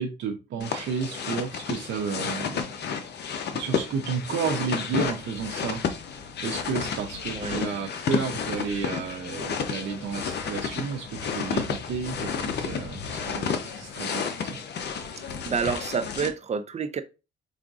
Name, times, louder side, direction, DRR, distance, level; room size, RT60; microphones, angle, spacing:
voice 1, 0.0-2.7 3.5-6.0 6.4-14.6, right 6 dB, 70° right, 0.6 m, -32 dB
sound 1, 0.6-16.3, left 6 dB, 60° left, 0.7 m, -31 dB
voice 2, 15.4-17.0, right 6 dB, 35° right, 0.5 m, -29 dB
4.7 x 2.5 x 2.4 m
cardioid pair, 90°, 20 cm